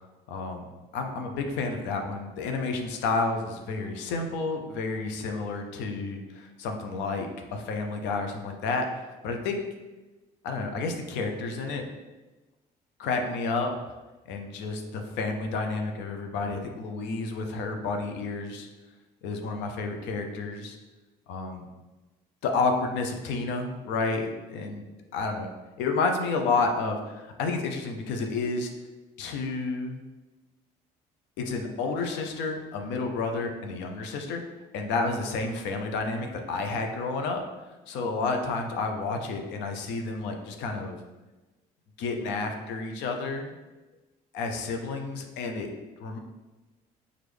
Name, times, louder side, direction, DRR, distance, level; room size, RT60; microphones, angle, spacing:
voice 1, 0.3-0.7 0.9-9.6 10.4-11.9 13.0-13.7 14.3-18.7 19.2-20.8 21.3-21.6 22.4-24.8 25.1-25.5 25.8-28.7 29.2-30.0 31.4-34.4 34.7-37.4 37.9-41.0 42.0-43.5 44.3-45.7 46.0-46.2, left 3 dB, 70° left, 4 dB, 0.6 m, -30 dB
4.5 x 2.5 x 3.4 m, 1.1 s
hypercardioid pair, 60°, 19 cm